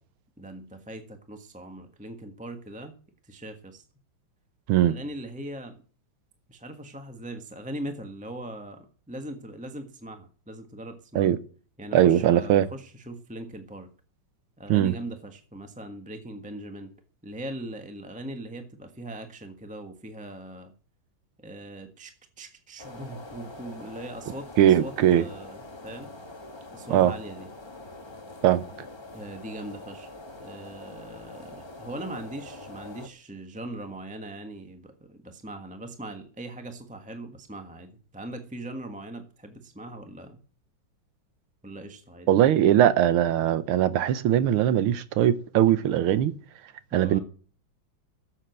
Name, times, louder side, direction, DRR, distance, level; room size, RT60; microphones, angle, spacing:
voice 1, 0.4-2.9 3.2-3.8 4.7-5.8 6.5-11.3 11.8-13.9 14.6-16.9 17.2-20.7 21.4-26.1 26.7-27.5 29.1-30.1 30.4-40.4 41.6-42.3 46.9-47.2, right 1 dB, 5° right, 1.1 m, -40 dB
voice 2, 11.9-12.7 14.7-14.9 24.6-25.2 26.9-27.1 28.4-28.6 42.3-46.3 46.9-47.2, right 11 dB, 85° right, 1.7 m, -20 dB
sound 1, 22.8-33.1, left 2 dB, 15° left, 1.1 m, -44 dB
13.0 x 7.9 x 8.0 m
omnidirectional pair, 2.3 m